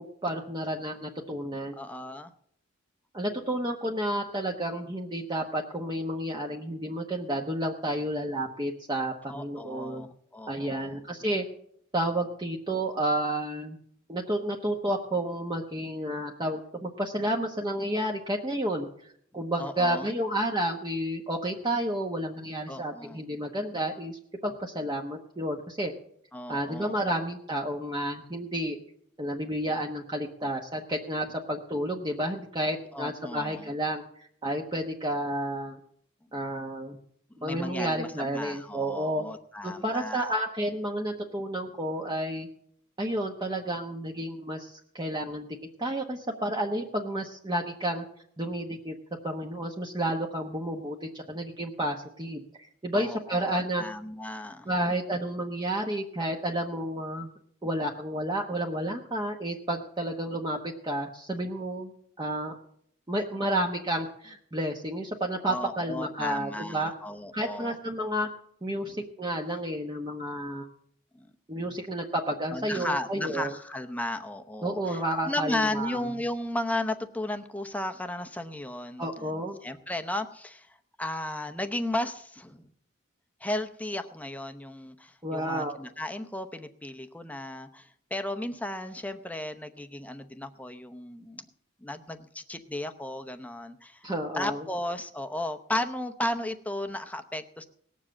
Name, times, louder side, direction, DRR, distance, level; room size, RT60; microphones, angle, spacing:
voice 1, 0.0-1.8 3.1-10.1 10.5-11.4 11.9-13.8 14.1-25.9 26.5-28.8 29.2-35.8 36.3-37.0 37.4-39.2 39.6-42.5 43.0-48.0 48.4-48.9 49.2-53.8 54.7-57.3 57.6-61.9 62.2-62.5 63.1-66.9 67.3-68.3 68.6-70.7 71.5-73.5 74.6-76.1 79.0-79.6 85.2-85.8 94.0-94.7, right 1 dB, 20° right, 0 dB, 1.0 m, -31 dB
voice 2, 1.8-2.3 9.3-11.0 19.6-20.1 22.7-23.2 26.3-26.9 32.9-33.7 37.4-40.3 52.9-54.7 65.5-67.8 68.8-69.0 71.1-71.3 72.5-82.7 83.4-91.4 91.8-94.1 94.3-97.7, left 1 dB, 5° left, 8 dB, 0.7 m, -35 dB
18.5 x 7.4 x 7.4 m, 0.67 s
head